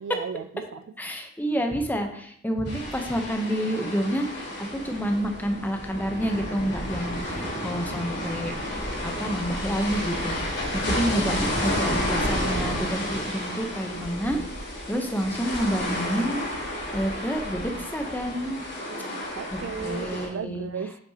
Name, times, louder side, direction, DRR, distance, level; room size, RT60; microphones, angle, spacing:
voice 1, 0.0-0.9 10.8-11.1 18.9-21.0, right 6 dB, 80° right, 0.4 m, -35 dB
voice 2, 1.0-10.4 10.7-14.4 14.9-16.4 16.9-18.6 19.5-20.7, equal, 10° left, 0.8 m, -29 dB
sound 1, 2.7-20.3, left 1 dB, 65° left, 2.7 m, -31 dB
8.4 x 6.0 x 2.9 m
head